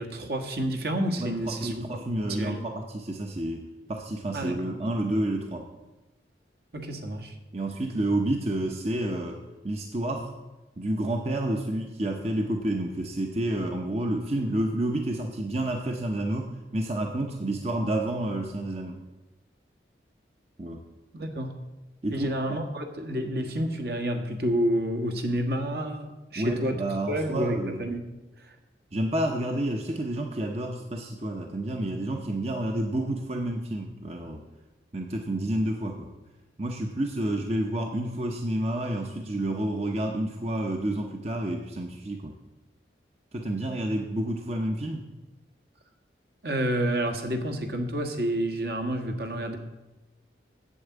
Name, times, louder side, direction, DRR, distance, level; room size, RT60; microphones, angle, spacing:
voice 1, 0.0-1.8 2.1-2.6 4.3-4.7 6.7-7.3 21.1-21.5 22.1-26.8 27.1-28.1 28.4-28.5 46.4-49.6, right 1 dB, 60° right, 4 dB, 1.4 m, -29 dB
voice 2, 1.2-3.6 3.9-5.7 7.5-10.3 10.8-18.9 20.6-20.8 22.0-22.6 26.4-27.8 28.9-34.4 34.9-36.1 36.6-42.3 43.3-45.1, right 1 dB, 35° right, 2 dB, 0.8 m, -29 dB
8.4 x 7.6 x 8.2 m, 1.1 s
head